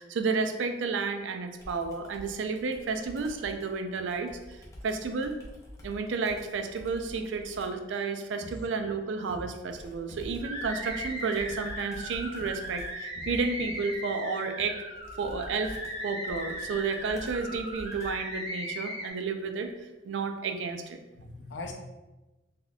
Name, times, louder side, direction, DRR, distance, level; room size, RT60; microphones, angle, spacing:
voice 1, 0.0-4.6 4.8-5.4 5.8-14.8 15.2-15.8 16.0-19.7 20.0-21.0, right 4 dB, 90° right, 6 dB, 0.4 m, -31 dB
Computer keyboard, 1.6-7.9 9.7-18.4, left 1 dB, 15° left, 0.5 m, -48 dB
sound 1, 10.4-19.1, equal, 35° right, 0.6 m, -38 dB
voice 2, 21.2-21.7, left 3 dB, 75° left, 3 dB, 0.5 m, -41 dB
3.9 x 2.8 x 2.3 m, 1.1 s
head